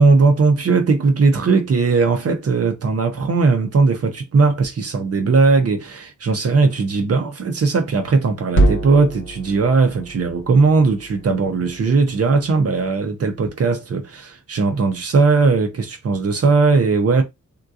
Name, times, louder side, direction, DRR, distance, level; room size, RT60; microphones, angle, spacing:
voice 1, 0.0-17.2, right 4 dB, 50° right, 0.6 m, -18 dB
sound 1, 8.5-12.9, right 2 dB, 40° left, 1.2 m, -25 dB
3.7 x 2.6 x 2.3 m
wide cardioid pair, 175°, 30 cm